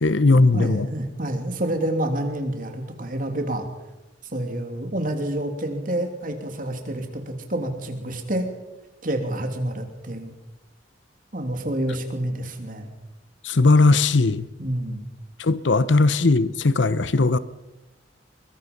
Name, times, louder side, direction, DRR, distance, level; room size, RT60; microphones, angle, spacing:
voice 1, 0.0-0.9 13.4-14.4 15.4-17.4, left 3 dB, 80° left, 0.9 m, -18 dB
voice 2, 0.5-3.7 4.3-8.5 9.0-10.3 11.3-12.9 14.6-15.1, right 1 dB, 45° right, 3.0 m, -28 dB
22.5 x 22.0 x 5.4 m
head